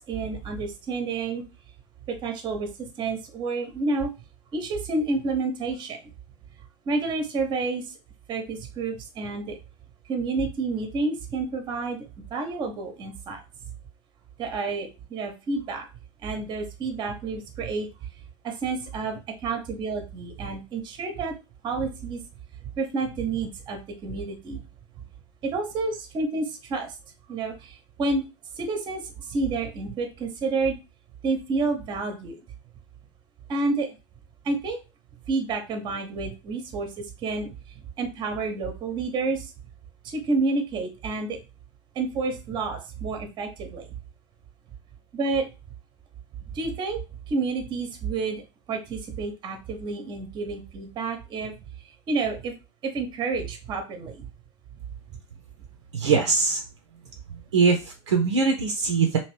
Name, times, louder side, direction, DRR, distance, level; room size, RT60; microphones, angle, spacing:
voice 1, 0.0-1.4 2.1-2.7 3.0-4.1 4.5-6.0 6.9-7.8 8.3-9.6 10.1-12.0 12.3-13.4 14.4-15.9 16.2-17.9 18.4-21.3 21.6-22.2 22.8-24.6 25.4-26.9 27.3-28.2 28.6-30.7 31.2-32.4 33.5-33.9 34.4-34.8 35.3-37.5 38.0-39.5 40.0-41.4 42.0-43.8 45.1-45.5 46.5-47.0 47.3-48.4 48.7-51.5 52.1-52.5 52.8-54.2, right 3 dB, 30° right, 5 dB, 0.9 m, -29 dB
voice 2, 55.9-56.6 57.5-59.2, right 5 dB, 70° right, 4 dB, 0.6 m, -22 dB
2.9 x 2.6 x 3.2 m, 0.28 s
figure-of-eight pair, 85°, 15 cm